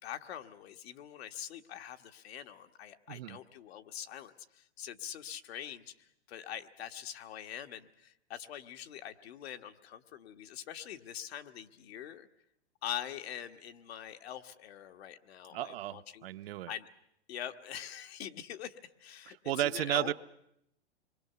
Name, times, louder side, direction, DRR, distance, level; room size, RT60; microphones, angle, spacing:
voice 1, 0.0-12.3 12.8-16.3 16.7-16.9 17.3-20.1, left 10 dB, 65° left, 6 dB, 1.5 m, -44 dB
voice 2, 3.1-3.4 15.5-16.7 19.3-20.1, right 14 dB, 60° right, 10 dB, 0.8 m, -34 dB
26.5 x 23.0 x 6.9 m, 0.77 s
hypercardioid pair, 135°, 34 cm